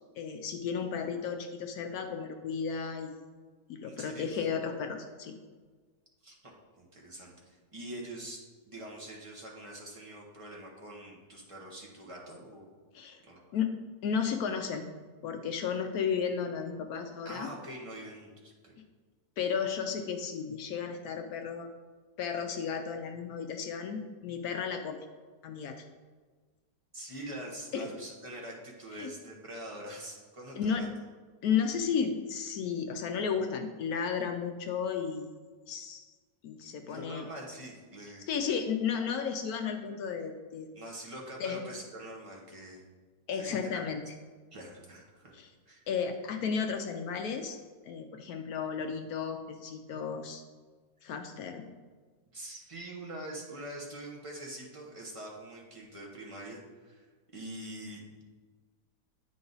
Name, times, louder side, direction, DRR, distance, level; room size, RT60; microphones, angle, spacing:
voice 1, 0.2-3.2 3.7-5.3 12.9-13.2 13.5-13.8 14.0-14.9 15.2-17.5 19.4-21.7 22.2-25.0 25.4-25.8 27.7-27.9 28.9-29.1 30.6-30.9 31.4-35.3 35.7-36.0 36.4-37.2 38.3-40.7 41.4-41.6 43.3-44.0 45.3-45.5 45.9-47.6 47.8-50.4 51.0-51.7, left 6 dB, 70° left, 6 dB, 0.9 m, -33 dB
voice 2, 3.8-4.5 6.2-12.7 13.2-13.6 17.2-18.7 26.9-30.9 36.8-38.3 40.7-42.8 43.3-43.8 44.5-45.3 45.6-45.9 51.0-51.1 52.3-57.1 57.3-58.2, right 1 dB, 25° right, -2 dB, 0.9 m, -44 dB
9.0 x 3.8 x 4.0 m, 1.4 s
omnidirectional pair, 1.9 m